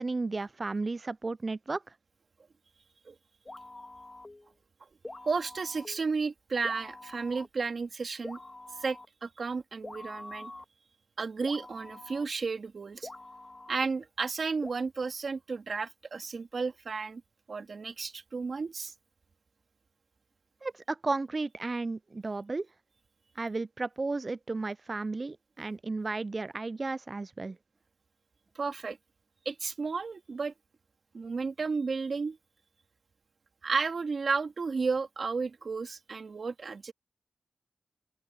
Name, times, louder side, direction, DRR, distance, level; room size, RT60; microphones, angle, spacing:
voice 1, 0.0-1.8 20.6-22.7 23.4-27.6, right 3 dB, 45° right, 0.3 m, -33 dB
sound 1, 3.4-4.5 5.0-6.1 6.6-7.5 8.2-9.0 9.8-10.6 11.4-12.2 13.0-13.9 14.6-14.7, left 2 dB, 30° left, 2.6 m, -45 dB
voice 2, 5.2-8.4 8.8-10.5 11.2-13.1 13.7-17.2 17.5-18.9 28.6-29.0 29.5-30.5 31.1-32.4 33.6-36.9, right 4 dB, 65° right, 2.2 m, -33 dB
open air
cardioid pair, 45°, 0 cm